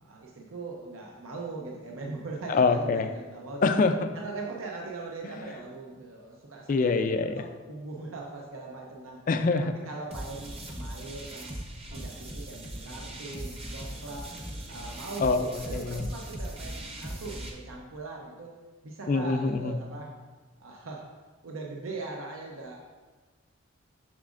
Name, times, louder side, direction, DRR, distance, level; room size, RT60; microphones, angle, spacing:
voice 1, 0.0-3.7 4.1-6.8 7.4-9.2 9.9-11.6 11.9-14.3 14.7-18.6 18.8-20.2 20.6-21.1 21.4-22.8, right 3 dB, 75° right, -1 dB, 0.7 m, -40 dB
voice 2, 2.5-3.1 3.6-3.9 6.7-7.4 9.3-9.7 15.2-16.0 19.1-19.7, left 4 dB, 40° left, 8 dB, 0.3 m, -25 dB
sound 1, 10.1-17.5, right 1 dB, 30° right, 0.8 m, -39 dB
7.3 x 6.0 x 2.5 m, 1.3 s
head